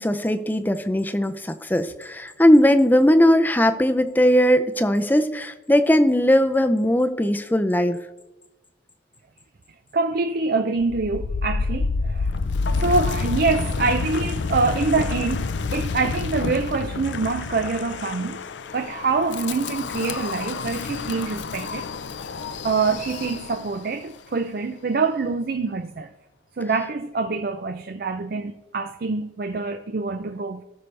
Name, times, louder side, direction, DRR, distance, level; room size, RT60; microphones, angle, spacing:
voice 1, 0.0-8.0, equal, 10° left, 0.5 m, -19 dB
voice 2, 9.9-12.3 12.8-18.4 18.7-21.9 22.3-26.1 26.6-30.6, right 4 dB, 50° right, 0.5 m, -25 dB
Wind, 10.8-23.8, left 4 dB, 70° left, 0.5 m, -28 dB
18.0 x 6.8 x 3.3 m
head